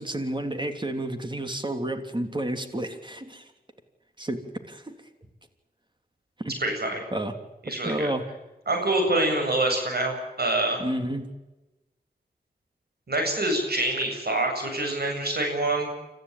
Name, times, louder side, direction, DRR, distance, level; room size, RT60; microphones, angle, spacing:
voice 1, 0.0-3.4 4.2-4.9 6.4-6.6 7.1-7.3 7.8-8.3 10.8-11.3, right 1 dB, 30° right, 7 dB, 3.3 m, -31 dB
voice 2, 6.6-7.0 7.6-8.1 8.7-10.8 13.1-15.9, right 2 dB, 70° right, 3 dB, 7.7 m, -26 dB
27.5 x 14.5 x 9.0 m, 1.0 s
wide cardioid pair, 55°, 17 cm